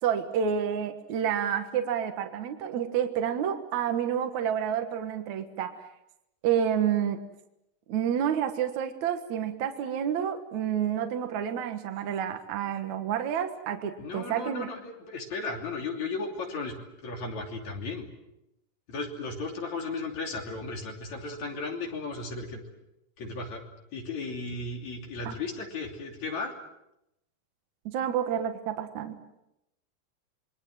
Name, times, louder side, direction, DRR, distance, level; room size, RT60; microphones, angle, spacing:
voice 1, 0.0-5.8 6.4-7.2 7.9-14.7 25.3-25.4 27.9-29.2, right 9 dB, 60° right, 6 dB, 2.6 m, -29 dB
voice 2, 14.0-16.8 17.0-18.1 18.9-22.6 23.2-23.6 23.9-26.5, left 3 dB, 55° left, 2 dB, 4.2 m, -35 dB
27.0 x 22.5 x 7.6 m, 0.86 s
omnidirectional pair, 3.9 m